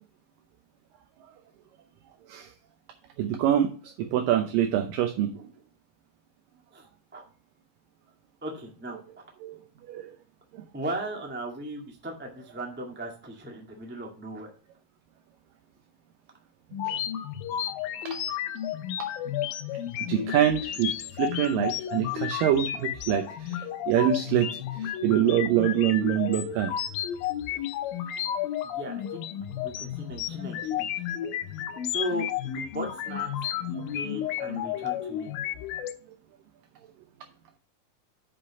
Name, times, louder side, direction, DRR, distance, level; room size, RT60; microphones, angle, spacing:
voice 1, 3.2-3.7 4.0-5.3 9.4-9.6 9.9-10.1 16.9-17.0 20.1-20.9 21.2-23.2 23.5-24.5 24.8-26.7, right 11 dB, 75° right, 6 dB, 2.4 m, -25 dB
voice 2, 8.4-9.2 10.7-14.5 28.6-29.2 29.6-31.0 31.8-33.3 33.6-35.3, right 1 dB, 10° right, 1 dB, 0.7 m, -37 dB
sound 1, 16.7-35.9, left 10 dB, 85° left, 2.5 m, -32 dB
7.7 x 5.1 x 5.8 m, 0.41 s
omnidirectional pair, 4.1 m